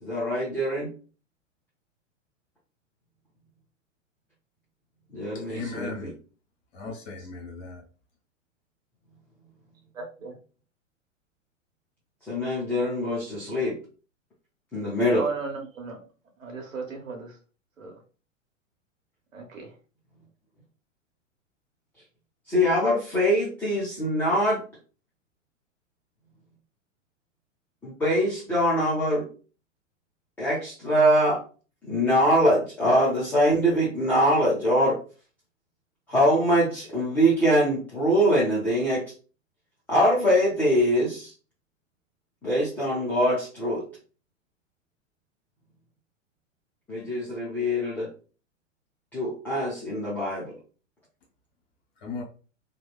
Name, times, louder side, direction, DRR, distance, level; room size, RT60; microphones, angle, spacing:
voice 1, 0.0-0.9 5.1-6.1 12.3-13.7 14.7-15.3 22.5-24.6 27.8-29.3 30.4-31.4 31.9-35.0 36.1-39.0 39.9-41.3 42.4-43.8 46.9-48.1 49.1-50.5, equal, 5° left, 0.3 m, -23 dB
voice 2, 5.5-6.1 6.7-7.8 52.0-52.2, left 4 dB, 50° left, 1.2 m, -36 dB
voice 3, 9.9-10.3 15.1-16.0 16.4-17.3 17.8-17.9 19.3-19.7, right 4 dB, 85° right, 0.9 m, -35 dB
2.8 x 2.1 x 2.3 m
figure-of-eight pair, 105°, 38 cm